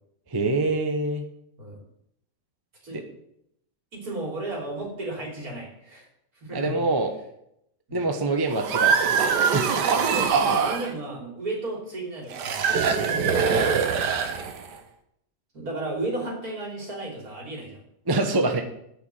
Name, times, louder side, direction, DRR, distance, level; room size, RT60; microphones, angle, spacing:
voice 1, 0.3-1.2 6.5-7.1 7.9-9.8 18.1-18.6, right 2 dB, 20° right, 5 dB, 0.8 m, -25 dB
voice 2, 3.9-6.1 6.4-6.8 7.9-8.0 10.0-14.0 15.5-17.8, right 2 dB, 60° right, -1 dB, 3.7 m, -34 dB
sound 1, 8.5-10.9 12.3-14.8, right 6 dB, 90° right, 1.6 m, -23 dB
10.5 x 5.9 x 7.6 m, 0.76 s
omnidirectional pair, 1.8 m